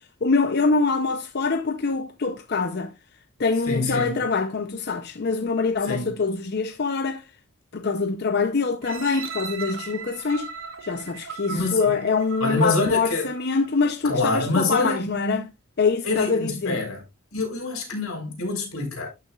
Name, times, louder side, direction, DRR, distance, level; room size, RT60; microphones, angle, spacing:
voice 1, 0.2-2.9 3.4-7.2 7.7-10.5 10.8-15.5 15.8-16.8, left 4 dB, 50° left, 0.6 m, -24 dB
voice 2, 3.7-4.2 5.8-6.1 9.1-9.2 11.5-11.9 12.4-13.3 14.0-15.0 16.0-17.0 17.3-19.1, left 3 dB, 85° left, 3.9 m, -26 dB
sound 1, 8.8-13.8 14.3-14.4, right 5 dB, 70° right, 1.2 m, -38 dB
12.5 x 6.2 x 2.3 m
head